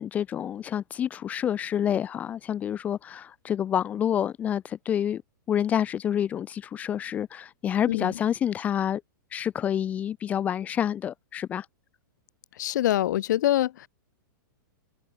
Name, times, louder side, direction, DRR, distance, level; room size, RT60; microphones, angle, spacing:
voice 1, 0.0-5.2 5.5-9.0 9.3-11.7, left 9 dB, 15° left, 0.4 m, -28 dB
voice 2, 12.6-13.9, left 13 dB, 60° left, 1.0 m, -24 dB
supercardioid pair, 165°, 11 cm